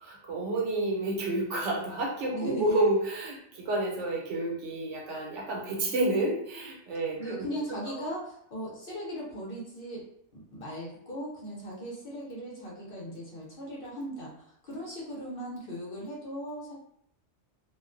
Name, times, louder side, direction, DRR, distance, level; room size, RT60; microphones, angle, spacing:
voice 1, 0.0-7.5 7.9-8.0, right 2 dB, 75° right, -2 dB, 1.0 m, -30 dB
voice 2, 2.3-2.6 7.2-10.0 10.3-16.7, equal, 55° left, -4 dB, 0.8 m, -38 dB
2.4 x 2.2 x 2.5 m, 0.71 s
omnidirectional pair, 1.2 m